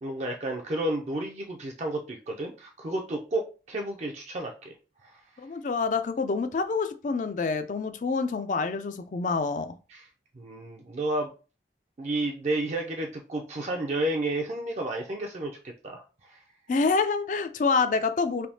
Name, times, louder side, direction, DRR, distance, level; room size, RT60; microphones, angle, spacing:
voice 1, 0.0-4.7 5.0-5.1 9.9-10.1 10.4-11.3 12.0-16.0 16.3-16.4, right 1 dB, 40° right, 0.4 m, -31 dB
voice 2, 5.4-9.8 16.7-18.5, left 4 dB, 45° left, 0.3 m, -27 dB
3.4 x 2.7 x 2.7 m
head